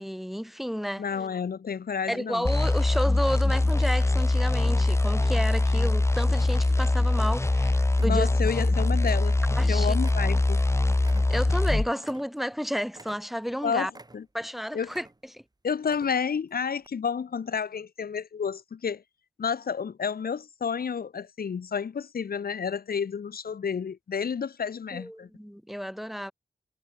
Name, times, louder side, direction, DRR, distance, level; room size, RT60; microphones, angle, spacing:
voice 1, 0.0-1.0 2.1-8.3 9.6-9.9 11.3-13.9 14.3-15.1 15.3-15.4 24.9-26.3, equal, ahead, 1.6 m, -31 dB
voice 2, 1.0-2.5 8.0-9.4 9.7-10.6 13.6-14.2 14.7-14.9 15.6-19.0 19.4-25.3, left 6 dB, 75° left, 1.4 m, -30 dB
sound 1, 2.4-11.9, left 2 dB, 15° left, 0.8 m, -23 dB
sound 2, 6.4-7.1 7.4-7.6 7.9-8.7 8.9-9.7 10.0-12.6 12.9-13.5 13.9-14.5 14.8-15.4 15.8-16.4 16.8-16.9, right 2 dB, 25° right, 3.8 m, -50 dB
cardioid pair, 70°, 16 cm